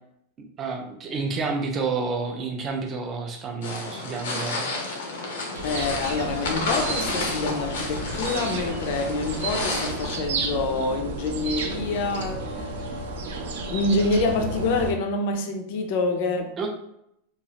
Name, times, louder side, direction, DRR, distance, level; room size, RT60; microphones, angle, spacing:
voice 1, 0.6-4.7 16.6-16.7, right 4 dB, 20° right, 3 dB, 0.4 m, -29 dB
sound 1, 3.6-10.2, left 2 dB, 90° left, 0.7 m, -31 dB
sound 2, 5.5-14.9, right 2 dB, 75° right, 0.5 m, -32 dB
voice 2, 5.6-12.9 13.7-16.7, left 3 dB, 45° left, 4 dB, 0.4 m, -27 dB
3.0 x 2.3 x 2.8 m, 0.77 s
supercardioid pair, 170°, 0 cm